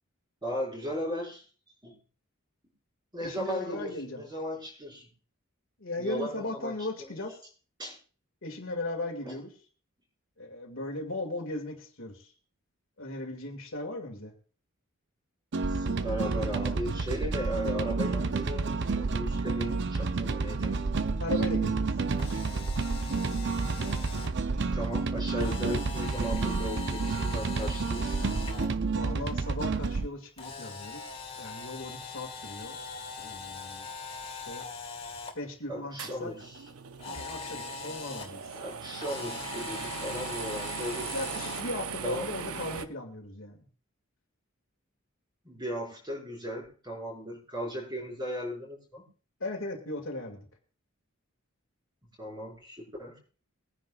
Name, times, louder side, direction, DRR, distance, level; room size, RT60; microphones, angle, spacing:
voice 1, 0.4-1.4 1.8-2.0 3.1-5.1 6.0-6.7 7.0-7.1 7.8-8.0 9.2-9.4 15.7-20.8 24.7-28.4 35.7-36.6 38.5-41.1 42.0-42.3 45.4-49.1 52.2-53.2, equal, 20° right, -2 dB, 5.7 m, -37 dB
voice 2, 3.2-4.2 5.8-7.4 8.4-9.5 10.4-12.3 13.0-14.3 21.2-21.9 28.9-31.1 31.4-32.8 33.2-33.9 34.3-34.7 35.3-36.3 37.1-38.5 41.1-43.6 49.4-50.4, left 2 dB, 65° left, 3 dB, 2.1 m, -37 dB
sound 1, 15.5-30.1, right 4 dB, 55° right, 0.6 m, -30 dB
Camera, 22.1-24.3 25.4-28.7 30.4-35.3 37.0-38.3 39.0-41.7, left 4 dB, 30° left, 2.2 m, -41 dB
sound 2, 36.0-42.8, right 6 dB, 85° right, 0.8 m, -39 dB
21.5 x 10.0 x 2.4 m, 0.38 s
head